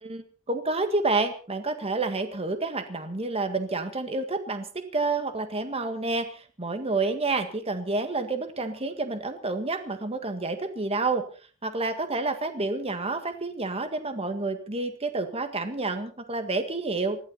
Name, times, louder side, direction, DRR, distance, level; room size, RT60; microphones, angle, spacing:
voice 1, 0.0-11.2 11.6-17.2, right 3 dB, 30° right, 8 dB, 1.8 m, -29 dB
20.0 x 15.0 x 4.2 m, 0.39 s
head